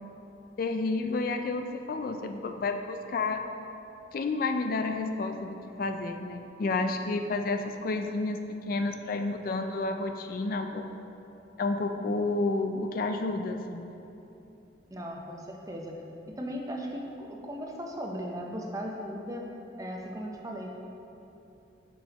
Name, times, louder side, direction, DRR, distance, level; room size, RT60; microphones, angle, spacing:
voice 1, 0.6-3.4 4.1-8.4 8.7-10.9 11.6-13.9, left 3 dB, 50° left, 6 dB, 0.3 m, -30 dB
voice 2, 14.9-16.0 16.3-19.4 19.8-20.7, equal, 20° right, 0 dB, 0.6 m, -37 dB
7.6 x 6.1 x 2.9 m, 2.9 s
head